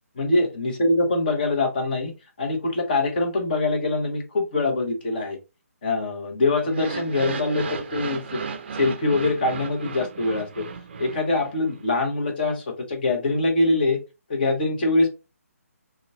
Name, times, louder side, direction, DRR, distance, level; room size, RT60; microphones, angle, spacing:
voice 1, 0.1-2.1 2.4-5.4 5.8-8.4 8.7-10.6 11.0-14.0 14.3-15.1, left 2 dB, 35° left, 3 dB, 1.1 m, -23 dB
sound 1, 6.7-11.8, right 5 dB, 40° right, 0.5 m, -35 dB
5.0 x 2.3 x 2.6 m, 0.27 s
figure-of-eight pair, 140°, 8 cm